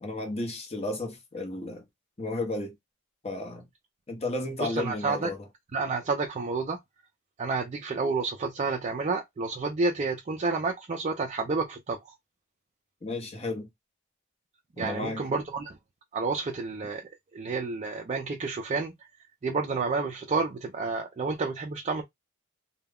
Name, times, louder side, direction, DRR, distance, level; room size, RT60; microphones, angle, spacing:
voice 1, 0.0-1.8 2.2-2.7 3.2-3.7 4.1-5.4 13.0-13.7 14.8-15.3, left 2 dB, 30° left, 0.8 m, -33 dB
voice 2, 4.6-5.3 5.7-6.8 7.4-12.1 14.8-15.8 16.1-17.0 17.3-18.9 19.4-22.0, right 4 dB, 35° right, 0.4 m, -30 dB
2.3 x 2.0 x 3.5 m
head